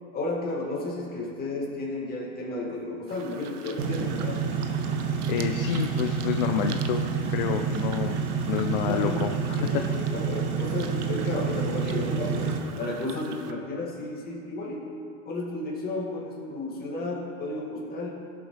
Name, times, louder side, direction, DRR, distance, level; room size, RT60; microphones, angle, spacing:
voice 1, 0.1-4.4 8.8-12.5 12.8-14.9 15.3-18.1, left 2 dB, 20° left, -4 dB, 2.2 m, -33 dB
sound 1, 3.1-13.5, right 7 dB, 85° right, 1.0 m, -45 dB
sound 2, 3.8-12.6, right 5 dB, 35° right, 1.3 m, -28 dB
voice 2, 5.3-8.2 8.5-9.9, left 8 dB, 40° left, 6 dB, 0.4 m, -29 dB
16.5 x 7.8 x 3.3 m, 2.7 s
hypercardioid pair, 145°, 45 cm